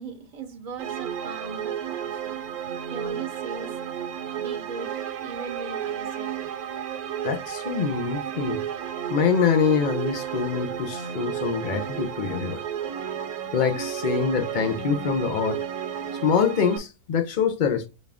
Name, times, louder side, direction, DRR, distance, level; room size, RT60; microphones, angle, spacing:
voice 1, 0.0-2.4 2.9-3.8 4.4-4.9 5.2-6.5, right 4 dB, 35° right, 0.6 m, -39 dB
sound 1, 0.8-16.8, right 9 dB, 70° right, 1.2 m, -32 dB
voice 2, 7.2-8.6 9.1-12.6 13.5-15.6 16.2-17.9, left 6 dB, 85° left, 0.4 m, -24 dB
6.2 x 2.4 x 3.4 m
omnidirectional pair, 1.7 m